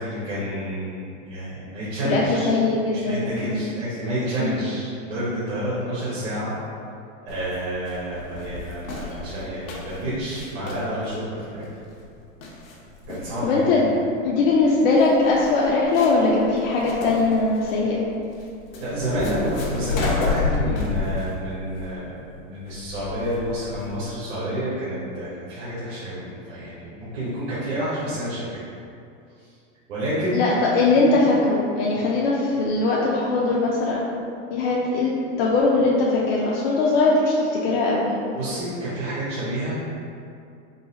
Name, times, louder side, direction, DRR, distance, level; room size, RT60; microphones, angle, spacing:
voice 1, 0.0-2.6 2.9-6.5 7.3-11.6 13.1-13.6 18.8-28.6 29.4-29.5 29.9-30.4 31.0-31.2 31.9-32.0 38.3-39.8, equal, 50° right, -11 dB, 1.1 m, -29 dB
voice 2, 2.0-3.7 4.4-4.6 13.4-13.9 14.2-18.0 30.3-34.0 34.5-35.1 35.4-38.0, left 3 dB, 50° left, -4 dB, 0.5 m, -20 dB
sound 1, 7.3-24.1, left 4 dB, 85° left, 1.0 m, -32 dB
3.9 x 2.1 x 3.9 m, 2.4 s
supercardioid pair, 160°, 39 cm